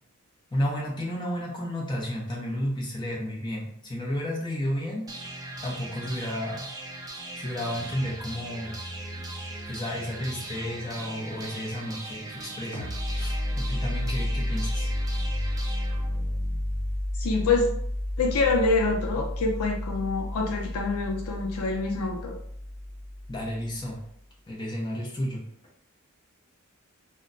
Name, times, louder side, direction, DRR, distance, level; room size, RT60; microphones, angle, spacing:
voice 1, 0.5-5.0 5.6-6.7 7.4-8.7 9.7-14.9 23.3-24.0 24.5-25.4, equal, 20° left, -3 dB, 0.6 m, -32 dB
sound 1, 5.1-17.0, right 2 dB, 15° right, 0.4 m, -39 dB
sound 2, 12.7-24.1, left 1 dB, 40° right, 0.8 m, -31 dB
voice 2, 17.2-17.7 18.2-22.3, left 3 dB, 85° left, 1 dB, 0.5 m, -26 dB
2.2 x 2.1 x 3.8 m, 0.69 s
head